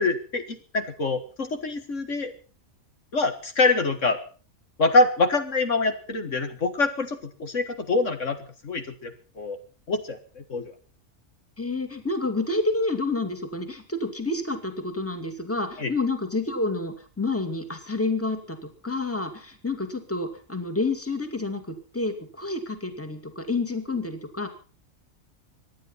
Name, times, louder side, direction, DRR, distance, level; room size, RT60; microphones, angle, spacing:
voice 1, 0.0-2.3 3.1-4.2 4.8-8.4 8.6-9.6 9.9-10.7 15.8-15.9, left 3 dB, 65° left, 7 dB, 1.9 m, -25 dB
voice 2, 11.6-24.5, left 3 dB, 10° left, 7 dB, 2.2 m, -29 dB
25.0 x 10.0 x 5.6 m, 0.39 s
omnidirectional pair, 1.4 m